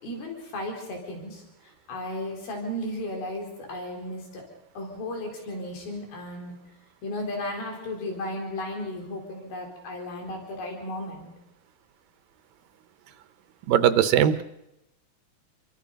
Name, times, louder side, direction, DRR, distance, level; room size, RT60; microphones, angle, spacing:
voice 1, 0.0-4.4 4.8-6.6 7.0-11.3, left 1 dB, 90° left, 1 dB, 6.0 m, -35 dB
voice 2, 13.7-14.4, right 10 dB, 75° right, 11 dB, 2.6 m, -20 dB
28.0 x 23.5 x 5.3 m, 0.89 s
omnidirectional pair, 4.1 m